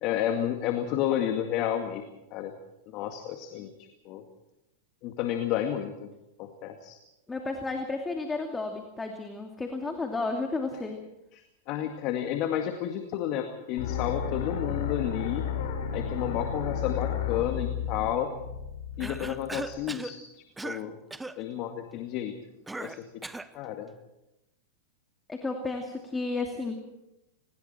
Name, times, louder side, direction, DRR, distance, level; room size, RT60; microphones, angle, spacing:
voice 1, 0.0-2.0 2.3-2.5 2.9-3.7 4.1-4.2 5.0-6.1 6.4-7.0 11.3-15.5 15.9-18.3 19.0-20.2 20.6-21.0 21.4-22.3 22.8-23.3 23.5-23.9, left 10 dB, 50° left, 5 dB, 2.1 m, -31 dB
voice 2, 7.3-11.0 25.3-26.8, left 3 dB, 15° left, 3 dB, 2.5 m, -32 dB
sound 1, 13.8-19.7, left 7 dB, 65° left, 4.1 m, -33 dB
Cough, 19.0-20.2 20.6-20.8 21.1-21.4 22.7-23.5, right 2 dB, 10° right, 0.9 m, -38 dB
29.0 x 20.5 x 4.4 m, 0.91 s
hypercardioid pair, 105°, 0 cm